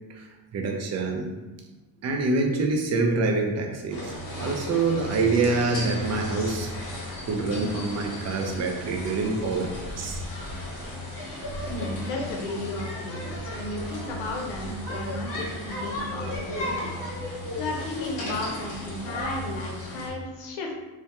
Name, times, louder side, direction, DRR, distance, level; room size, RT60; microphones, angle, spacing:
voice 1, 0.1-1.3 2.0-6.8 7.3-9.7 10.0-10.2, right 3 dB, 35° right, 2 dB, 0.5 m, -26 dB
sound 1, 3.9-20.1, left 1 dB, 40° left, 0.9 m, -35 dB
voice 2, 11.7-20.7, left 2 dB, 80° left, 0 dB, 0.7 m, -34 dB
2.2 x 2.2 x 2.8 m, 1.2 s
cardioid pair, 90°, 48 cm